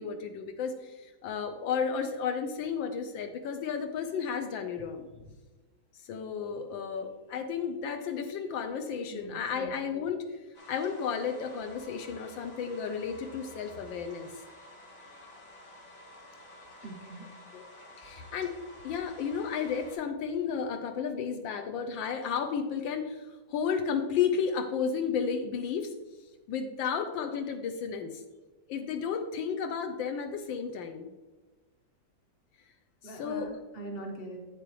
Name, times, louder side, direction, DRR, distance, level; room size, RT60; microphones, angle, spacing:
voice 1, 0.0-5.0 6.0-10.3 10.7-14.3 17.5-17.6 18.0-18.6 18.8-25.9 26.5-28.2 28.7-31.1 33.0-33.5, left 6 dB, 80° left, 6 dB, 1.4 m, -33 dB
voice 2, 9.1-9.7 16.8-17.2 33.0-34.4, right 2 dB, 35° left, 1 dB, 1.4 m, -42 dB
sound 1, 10.5-19.9, left 1 dB, 60° left, 2.3 m, -51 dB
8.4 x 7.9 x 3.1 m, 1.2 s
omnidirectional pair, 2.1 m